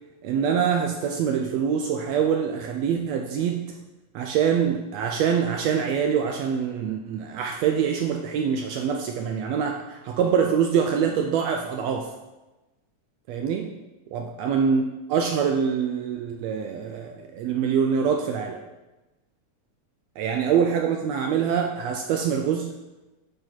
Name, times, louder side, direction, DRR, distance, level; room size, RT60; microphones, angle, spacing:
voice 1, 0.2-3.6 4.1-12.1 13.3-13.7 14.1-14.8 15.1-18.6 20.2-22.7, right 7 dB, 80° right, 3 dB, 1.6 m, -24 dB
9.4 x 4.0 x 4.4 m, 1.1 s
omnidirectional pair, 3.4 m